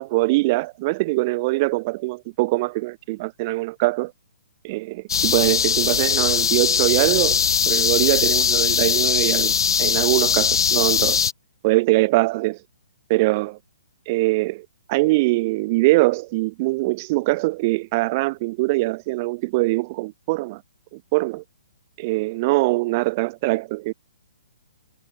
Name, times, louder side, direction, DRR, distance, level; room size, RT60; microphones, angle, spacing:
voice 1, 0.0-4.1 4.6-7.4 7.7-9.5 9.8-11.2 11.6-12.6 13.1-13.6 14.1-20.6 20.9-21.4 22.0-23.9, right 22 dB, 35° right, 6.0 m, -22 dB
sound 1, 5.1-11.3, left 7 dB, 75° left, 3.5 m, -20 dB
hypercardioid pair, 150°, 2 cm